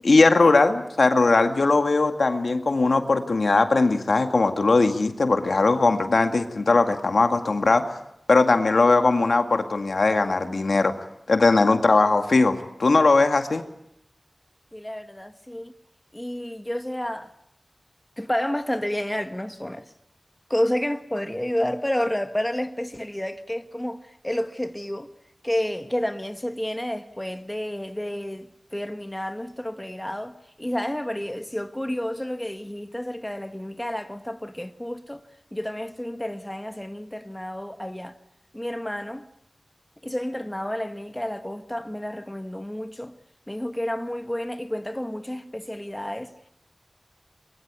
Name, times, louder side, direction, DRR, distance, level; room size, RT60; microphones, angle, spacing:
voice 1, 0.0-7.8 8.3-10.9 11.3-13.6, left 3 dB, 80° left, 2.0 m, -19 dB
voice 2, 14.7-15.7 16.1-17.3 18.2-19.9 20.5-25.1 25.4-38.1 38.5-39.3 40.0-43.1 43.5-46.3, left 1 dB, 15° left, 1.5 m, -30 dB
23.0 x 22.5 x 8.3 m
wide cardioid pair, 60°, 0 cm